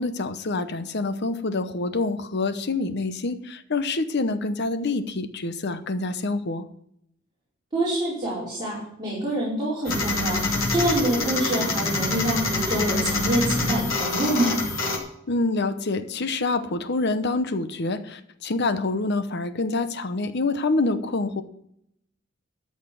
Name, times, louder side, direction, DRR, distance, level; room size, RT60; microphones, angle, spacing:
voice 1, 0.0-6.6 15.3-21.4, left 3 dB, 60° left, 11 dB, 0.9 m, -26 dB
voice 2, 7.7-10.4 10.7-14.6, right 1 dB, 20° right, -9 dB, 4.9 m, -26 dB
sound 1, 9.9-15.0, left 3 dB, 85° left, 2.7 m, -26 dB
13.5 x 5.8 x 7.7 m, 0.74 s
head